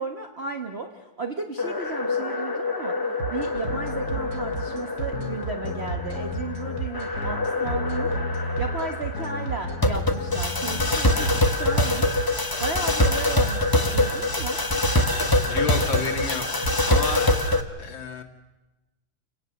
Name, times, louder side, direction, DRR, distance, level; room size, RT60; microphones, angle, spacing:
voice 1, 0.0-3.0 3.3-8.2 8.6-14.6, right 3 dB, 35° right, 4 dB, 1.4 m, -34 dB
sound 1, 1.6-17.6, left 2 dB, 15° left, 1.0 m, -25 dB
sound 2, 3.2-17.5, right 7 dB, 65° right, 2.8 m, -33 dB
sound 3, 3.7-11.6, left 4 dB, 55° left, 1.6 m, -34 dB
voice 2, 15.4-17.3 17.8-18.2, left 5 dB, 70° left, 4 dB, 2.7 m, -31 dB
29.5 x 18.0 x 6.6 m, 1.1 s
omnidirectional pair, 2.2 m